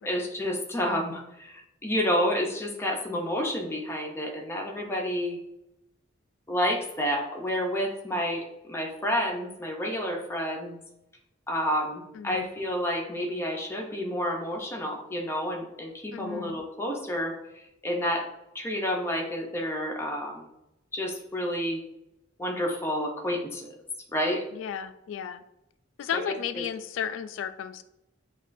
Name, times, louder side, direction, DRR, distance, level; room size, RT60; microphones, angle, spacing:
voice 1, 0.0-5.4 6.5-10.8 11.5-18.2 18.5-20.5 20.9-21.8 22.4-23.7 24.1-24.4 26.1-26.3, equal, 15° left, 0 dB, 0.5 m, -30 dB
voice 2, 12.1-12.5 16.1-16.6 24.5-25.4 26.0-27.8, left 8 dB, 80° left, 12 dB, 0.3 m, -34 dB
5.8 x 2.3 x 2.5 m, 0.86 s
head